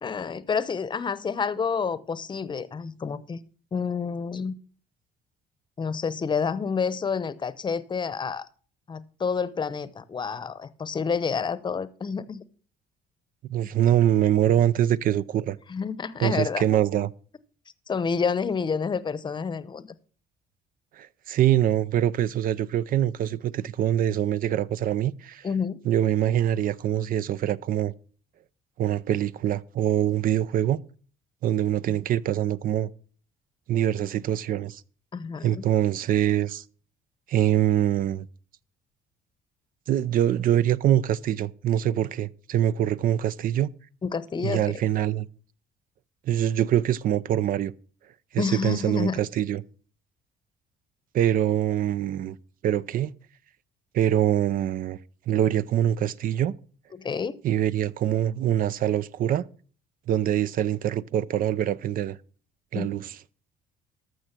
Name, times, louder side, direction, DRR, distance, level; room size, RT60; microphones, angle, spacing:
voice 1, 0.0-3.4 3.7-4.5 5.8-8.5 8.9-12.4 15.7-16.6 17.9-19.9 25.4-25.8 35.1-35.6 44.0-44.6 48.4-49.2 56.9-57.4 62.7-62.9, left 5 dB, 25° left, 0.8 m, -29 dB
voice 2, 13.5-15.6 16.2-17.1 21.0-25.4 25.8-27.9 28.8-30.8 31.4-32.9 33.7-34.8 35.4-36.6 37.3-38.3 39.9-43.7 44.4-45.3 46.3-47.7 48.3-49.6 51.1-52.4 52.6-53.1 53.9-55.0 55.3-56.5 57.4-59.4 60.1-62.2 62.7-63.1, right 11 dB, 55° right, 0.5 m, -24 dB
13.5 x 6.3 x 6.0 m
cardioid pair, 110°, 17 cm